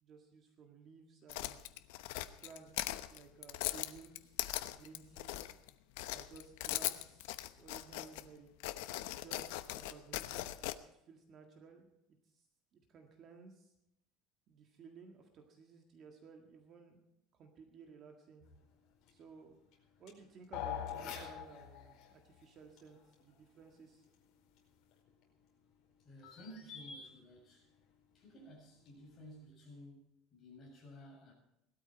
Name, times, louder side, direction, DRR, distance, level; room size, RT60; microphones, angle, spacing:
voice 1, 0.0-1.7 2.4-5.4 6.1-8.5 9.0-10.5 11.1-12.4 12.7-13.7 14.5-18.5 19.1-19.6 20.0-24.1, right 5 dB, 30° right, 3 dB, 1.8 m, -57 dB
sound 1, 1.3-5.7 6.0-8.2 8.6-10.7, left 16 dB, 90° left, 0.9 m, -40 dB
sound 2, 18.4-29.5, left 5 dB, 45° left, 4.9 m, -58 dB
sound 3, 20.5-22.0, left 9 dB, 65° left, 2.2 m, -42 dB
voice 2, 26.0-27.7 28.1-31.3, equal, 25° left, -2 dB, 7.2 m, -55 dB
19.0 x 13.0 x 4.5 m, 0.82 s
cardioid pair, 175°, 0 cm